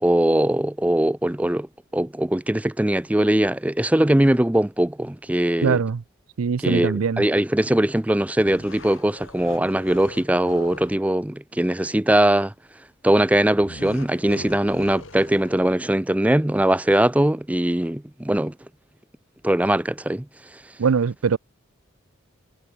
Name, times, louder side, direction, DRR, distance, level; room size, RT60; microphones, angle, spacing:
voice 1, 0.0-1.7 1.9-5.8 6.6-12.5 13.0-18.5 19.4-20.3, right 1 dB, 5° right, 0.4 m, -21 dB
voice 2, 5.6-6.0 6.4-7.2 20.8-21.4, right 6 dB, 90° right, 0.5 m, -22 dB
sound 1, 8.4-11.0 13.6-15.9, left 2 dB, 65° left, 4.8 m, -41 dB
head